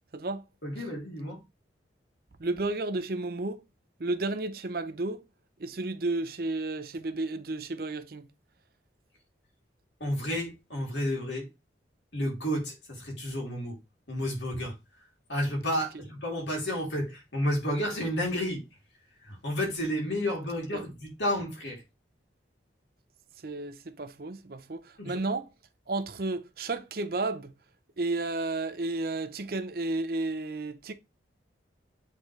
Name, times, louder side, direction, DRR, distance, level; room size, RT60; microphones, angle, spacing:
voice 1, 0.6-1.4 10.0-11.5 12.1-13.8 14.1-14.8 15.3-18.6 19.2-21.8 25.0-25.2, equal, 75° left, 3.0 m, -31 dB
voice 2, 2.4-3.6 4.0-5.2 5.6-8.2 20.7-20.8 23.4-25.4 25.9-27.5 28.0-30.9, right 2 dB, 55° right, 0.6 m, -32 dB
8.1 x 3.8 x 3.2 m
head